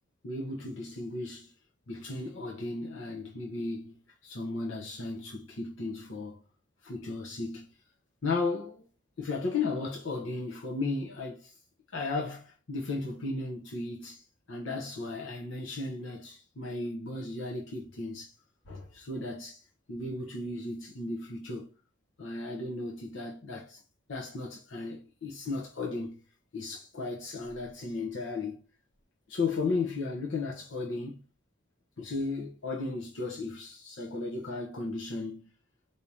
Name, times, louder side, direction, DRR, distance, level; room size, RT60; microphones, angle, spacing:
voice 1, 0.2-1.5 1.9-3.9 4.2-6.4 6.8-7.7 8.2-8.9 9.2-11.6 11.9-18.3 18.7-21.7 22.2-23.8 24.1-26.2 26.5-28.6 29.3-31.2 32.0-35.5, left 3 dB, 65° left, 0.8 m, -35 dB
4.8 x 2.8 x 2.8 m
head